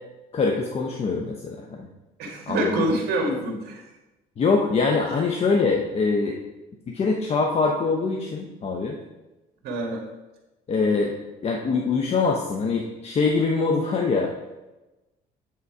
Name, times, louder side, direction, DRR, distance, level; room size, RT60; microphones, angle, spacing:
voice 1, 0.3-1.9 2.5-2.9 4.4-6.3 6.9-9.0 10.7-11.2 11.4-14.3, left 4 dB, 40° left, 1 dB, 0.8 m, -23 dB
voice 2, 2.2-3.8 9.6-10.0, right 1 dB, 70° right, 0 dB, 1.7 m, -26 dB
8.5 x 3.8 x 4.7 m, 1.1 s
cardioid pair, 110°, 17 cm